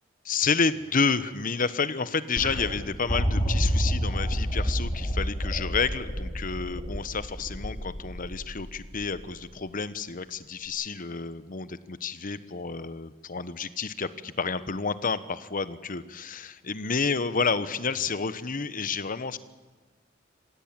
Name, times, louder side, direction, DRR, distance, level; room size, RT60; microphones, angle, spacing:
voice 1, 0.2-19.4, left 5 dB, 45° left, 14 dB, 1.0 m, -30 dB
sound 1, 2.4-9.5 10.7-10.8, equal, 25° left, 6.2 m, -29 dB
25.5 x 16.5 x 8.9 m, 1.3 s
head